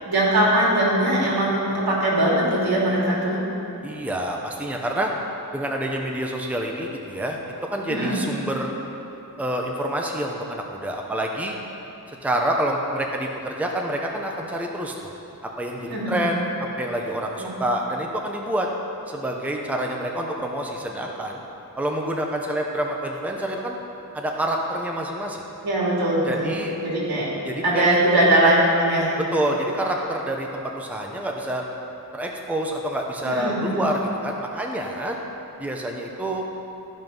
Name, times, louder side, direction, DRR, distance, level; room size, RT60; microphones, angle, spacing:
voice 1, 0.0-3.4 7.9-8.2 15.8-16.3 17.4-17.5 25.6-26.5 26.8-27.3 27.6-29.2 33.2-33.8, right 1 dB, 75° right, -5 dB, 2.7 m, -21 dB
voice 2, 3.8-5.1 5.5-8.7 9.4-11.6 12.1-15.1 15.4-18.7 19.1-21.4 21.8-23.8 24.1-25.4 26.3-26.7 27.4-28.0 29.3-31.6 32.1-35.2 35.6-36.4, right 1 dB, 5° right, 0 dB, 0.7 m, -27 dB
13.5 x 5.7 x 5.4 m, 3.0 s
wide cardioid pair, 135°, 37 cm